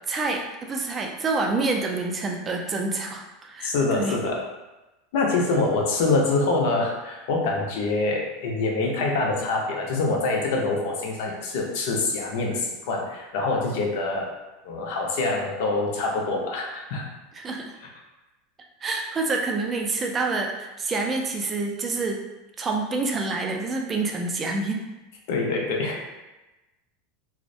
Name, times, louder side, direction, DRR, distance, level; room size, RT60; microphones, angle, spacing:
voice 1, 0.1-4.2 17.3-17.7 18.8-22.2 22.6-24.8, right 3 dB, 20° right, 1 dB, 0.3 m, -27 dB
voice 2, 3.6-4.4 5.1-14.3 14.6-17.1 25.3-26.0, left 3 dB, 70° left, 0 dB, 0.5 m, -25 dB
2.4 x 2.0 x 2.6 m, 1.1 s
supercardioid pair, 140°, 0 cm